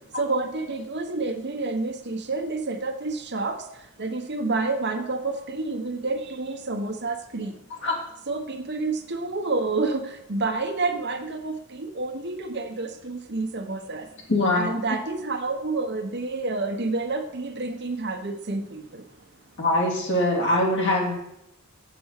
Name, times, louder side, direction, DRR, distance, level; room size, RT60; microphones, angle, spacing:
voice 1, 0.2-3.6 4.0-7.5 8.3-14.0 14.5-18.8, right 3 dB, 55° right, 5 dB, 1.2 m, -29 dB
voice 2, 14.3-14.7 19.6-21.1, left 1 dB, 60° left, -1 dB, 2.7 m, -22 dB
8.5 x 7.0 x 6.6 m, 0.83 s
head